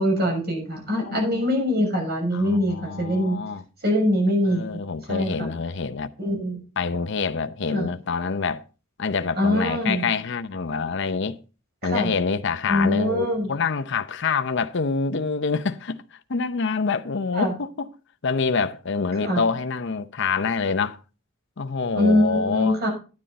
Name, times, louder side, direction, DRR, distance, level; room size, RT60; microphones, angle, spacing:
voice 1, 0.0-3.4 3.8-4.8 5.1-5.5 6.2-6.6 7.7-7.9 9.4-10.1 11.8-12.1 12.7-13.5 17.3-17.5 19.2-19.4 21.9-22.9, left 1 dB, 50° right, 6.5 m, -23 dB
voice 2, 0.9-1.4 2.3-3.6 4.5-6.1 6.8-8.6 9.0-11.4 11.8-16.0 16.3-17.9 18.2-21.0 21.6-22.8, left 4 dB, 60° left, 0.7 m, -26 dB
10.5 x 10.0 x 4.1 m
head